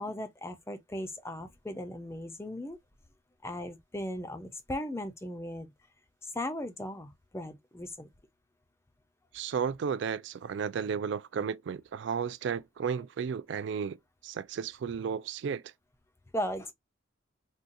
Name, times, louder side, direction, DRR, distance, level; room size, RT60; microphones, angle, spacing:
voice 1, 0.0-2.8 3.4-5.7 6.2-8.1 16.3-16.7, left 1 dB, 10° left, 0.4 m, -37 dB
voice 2, 9.3-14.0 14.2-15.6, right 6 dB, 60° right, 0.3 m, -33 dB
3.8 x 2.3 x 2.5 m
head